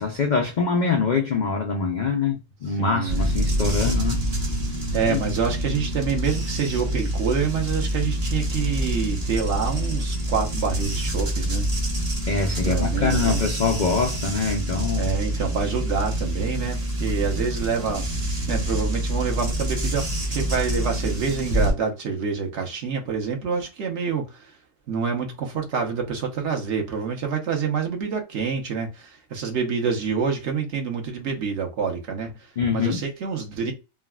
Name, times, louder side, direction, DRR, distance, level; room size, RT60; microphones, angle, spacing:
voice 1, 0.0-4.2 5.1-5.2 12.3-15.1 32.6-33.0, left 4 dB, 80° left, 0.4 m, -24 dB
voice 2, 2.8-3.2 4.9-11.7 12.6-13.4 15.0-18.1 18.5-24.5 24.9-33.7, right 5 dB, 60° right, 1.1 m, -27 dB
sound 1, 3.1-21.7, right 1 dB, 35° right, 0.8 m, -26 dB
3.4 x 2.3 x 2.2 m
omnidirectional pair, 1.5 m